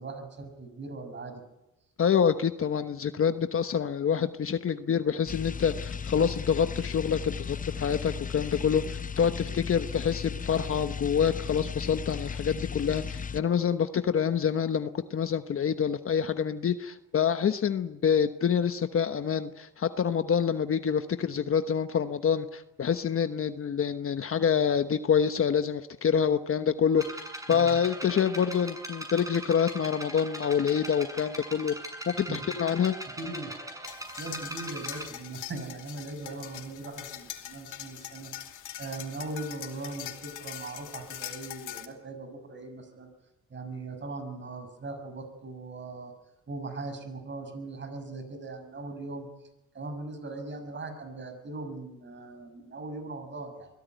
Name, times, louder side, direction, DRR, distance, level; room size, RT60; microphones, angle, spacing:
voice 1, 0.0-1.4 27.5-27.7 32.3-32.4 33.2-33.5 34.2-38.3 38.8-43.1 43.5-46.1 46.5-49.3 49.7-53.7, right 3 dB, 40° right, 8 dB, 6.0 m, -39 dB
voice 2, 2.0-27.0 27.5-31.7 32.1-32.9, left 7 dB, 45° left, 9 dB, 1.1 m, -27 dB
sound 1, 5.3-13.4, left 6 dB, 25° left, 0.7 m, -36 dB
sound 2, 27.0-35.0, right 1 dB, 10° right, 7.0 m, -40 dB
sound 3, 33.9-41.9, left 12 dB, 80° left, 2.7 m, -42 dB
23.0 x 17.0 x 9.3 m, 0.93 s
cardioid pair, 90°, 30 cm